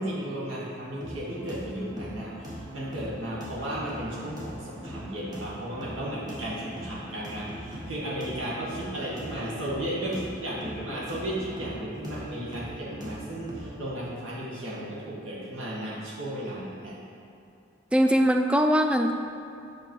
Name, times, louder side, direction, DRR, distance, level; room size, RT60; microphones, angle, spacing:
voice 1, 0.0-17.0, right 1 dB, 80° right, -7 dB, 1.7 m, -34 dB
sound 1, 1.0-13.8, equal, 20° right, 1.3 m, -41 dB
voice 2, 17.9-19.1, equal, 5° right, 5 dB, 0.3 m, -21 dB
7.1 x 4.7 x 4.7 m, 2.6 s
head